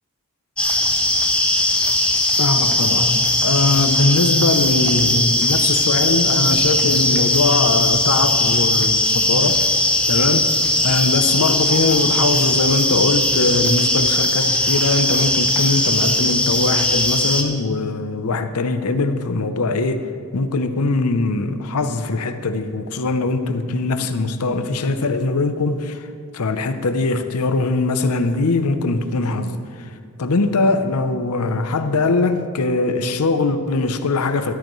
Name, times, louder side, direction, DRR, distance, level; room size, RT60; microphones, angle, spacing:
sound 1, 0.6-17.4, left 1 dB, 5° left, 0.8 m, -19 dB
voice 1, 2.4-9.6 10.1-10.5 10.8-20.1 20.3-26.1 26.3-29.9 30.2-34.5, left 3 dB, 85° left, 0.7 m, -21 dB
13.5 x 12.5 x 3.2 m
head